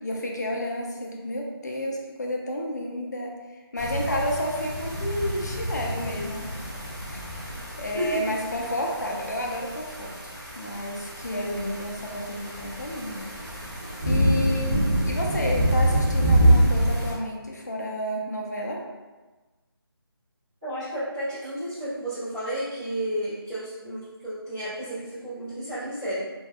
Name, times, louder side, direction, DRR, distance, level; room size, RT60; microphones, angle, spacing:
voice 1, 0.0-3.4 3.7-6.5 7.1-10.2 10.6-13.3 14.0-18.8, equal, 45° left, -1 dB, 0.4 m, -31 dB
sound 1, 3.8-17.1, right 1 dB, 45° right, 0.6 m, -26 dB
voice 2, 20.6-26.2, equal, 15° right, -21 dB, 0.9 m, -32 dB
2.6 x 2.3 x 2.3 m, 1.2 s
figure-of-eight pair, 180°, 13 cm